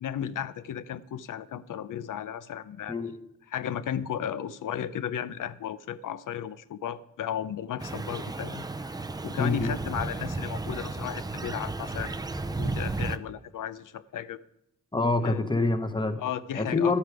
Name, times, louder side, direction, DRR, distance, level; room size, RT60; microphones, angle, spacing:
voice 1, 0.0-3.0 3.5-8.9 9.2-12.1 12.6-14.4 15.2-15.4 16.2-16.9, left 9 dB, 80° left, 15 dB, 0.6 m, -34 dB
sound 1, 7.8-13.2, right 2 dB, 15° right, 0.4 m, -33 dB
voice 2, 9.4-9.7 14.9-16.2 16.5-17.0, left 3 dB, 15° left, 8 dB, 1.0 m, -26 dB
12.5 x 8.6 x 4.8 m, 0.81 s
wide cardioid pair, 105°, 31 cm